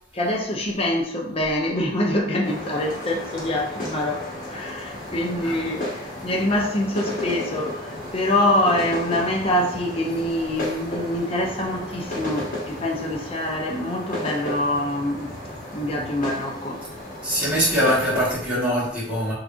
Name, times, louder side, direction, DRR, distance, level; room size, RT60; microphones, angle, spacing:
voice 1, 0.1-5.9 6.2-15.3 15.7-16.8, left 1 dB, 30° left, 0 dB, 0.7 m, -25 dB
sound 1, 2.4-18.3, left 1 dB, 50° left, 1.2 m, -33 dB
voice 2, 17.2-19.3, equal, 5° right, -8 dB, 1.4 m, -23 dB
3.5 x 3.2 x 2.5 m, 0.67 s
head